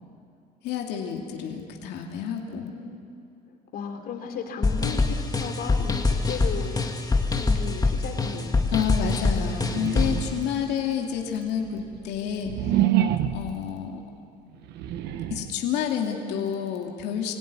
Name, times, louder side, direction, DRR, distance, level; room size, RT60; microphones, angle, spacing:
voice 1, 0.6-2.7 8.7-12.8 13.3-14.0 15.3-17.3, left 8 dB, 85° left, 1 dB, 2.7 m, -29 dB
voice 2, 2.5-3.1 3.7-6.9 7.3-8.8 10.2-10.9, left 5 dB, 65° left, 4 dB, 3.7 m, -36 dB
sound 1, 4.6-10.3, left 3 dB, 20° left, 2.1 m, -24 dB
sound 2, 9.5-10.6 11.2-13.6 14.5-15.6, right 11 dB, 85° right, 1.3 m, -27 dB
26.0 x 17.5 x 9.7 m, 2.5 s
cardioid pair, 110°, 17 cm